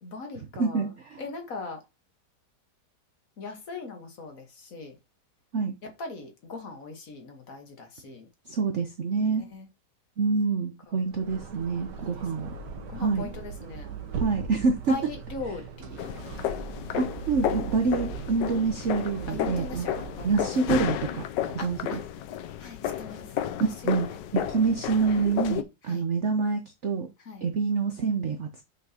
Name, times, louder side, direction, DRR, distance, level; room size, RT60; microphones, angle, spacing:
voice 1, 0.0-0.9 1.2-1.8 3.4-5.0 5.8-8.3 9.5-9.7 10.9-11.0 12.0-12.1 12.6-13.9 14.9-16.1 19.3-20.3 21.6-22.0 22.6-23.7 25.9-26.1 27.3-27.5, left 3 dB, 55° left, 1.7 m, -40 dB
voice 2, 0.6-1.2 5.5-5.7 8.5-9.5 10.2-12.5 12.9-13.3 14.1-15.0 16.9-19.9 20.2-22.0 23.6-27.1 27.4-28.6, right 4 dB, 50° right, 1.0 m, -27 dB
sound 1, 11.0-20.6, right 6 dB, 75° right, 1.6 m, -39 dB
sound 2, 16.0-25.6, left 10 dB, 85° left, 1.3 m, -32 dB
7.4 x 6.2 x 2.9 m
omnidirectional pair, 1.9 m